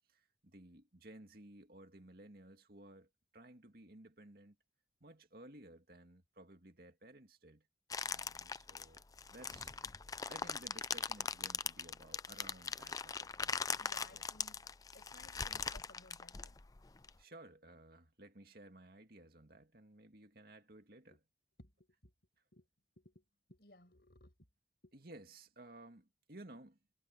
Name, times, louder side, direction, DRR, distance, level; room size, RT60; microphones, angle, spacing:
voice 1, 0.1-4.6 5.0-7.7 8.0-9.0 9.3-9.8 10.3-13.8 14.1-14.3 17.2-21.2 24.9-26.8, right 1 dB, 55° right, 2.3 m, -57 dB
sound 1, 7.9-17.1, left 5 dB, 20° left, 0.4 m, -41 dB
voice 2, 13.8-16.6 21.1-21.2 21.6-21.7 22.0-22.1 22.5-22.7 23.0-24.3 24.8-24.9, left 1 dB, 65° left, 6.5 m, -61 dB
head